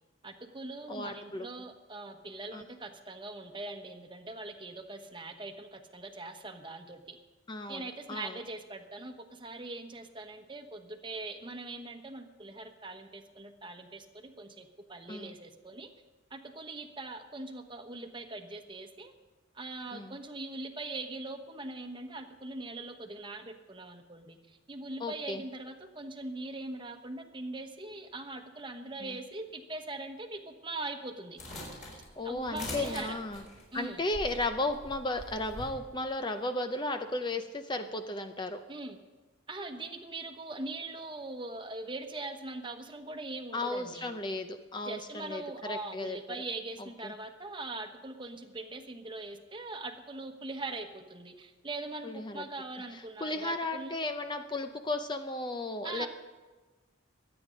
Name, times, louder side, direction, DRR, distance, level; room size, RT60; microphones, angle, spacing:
voice 1, 0.2-7.2 7.7-15.9 16.3-19.1 19.5-31.4 32.2-33.2 33.7-34.0 38.7-39.0 39.5-44.1 44.8-53.9 55.8-56.1, right 2 dB, 25° right, 6 dB, 1.1 m, -41 dB
voice 2, 0.9-1.5 2.5-2.6 7.5-8.4 15.1-15.3 19.9-20.1 25.0-25.4 32.2-33.4 33.7-38.6 43.5-46.2 47.0-47.1 52.0-52.4 52.9-56.1, left 2 dB, 25° left, 7 dB, 0.6 m, -35 dB
sound 1, 31.4-35.7, left 1 dB, 40° left, 5.4 m, -43 dB
23.5 x 9.0 x 5.2 m, 1.3 s
head